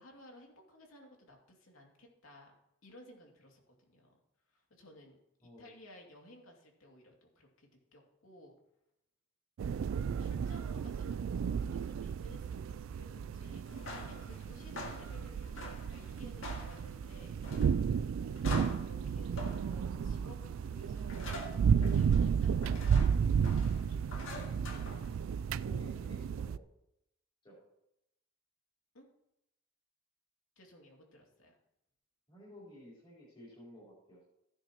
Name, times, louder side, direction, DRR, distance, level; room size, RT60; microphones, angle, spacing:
voice 1, 0.0-2.5 2.8-4.1 4.5-8.6 9.6-15.5 15.8-18.6 18.8-21.4 21.8-24.0 28.9-29.1 30.6-31.6, left 1 dB, 85° left, 0 dB, 2.6 m, -58 dB
sound 1, 9.6-26.6, right 7 dB, 70° right, 0.3 m, -33 dB
sound 2, 13.6-25.5, left 2 dB, 70° left, 2.1 m, -47 dB
voice 2, 25.5-26.6 27.4-27.6 32.3-34.2, equal, 25° left, -7 dB, 4.0 m, -53 dB
15.5 x 9.9 x 3.0 m, 0.85 s
head